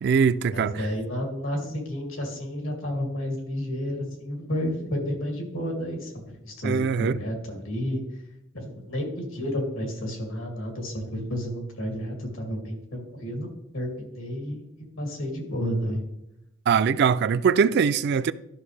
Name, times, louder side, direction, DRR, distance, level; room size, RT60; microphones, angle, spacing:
voice 1, 0.0-0.9 6.6-7.2 16.7-18.3, right 6 dB, 55° right, 0.3 m, -22 dB
voice 2, 0.5-8.0 8.5-14.7 15.0-16.0, equal, 90° left, 2.5 m, -31 dB
12.5 x 5.9 x 3.3 m
head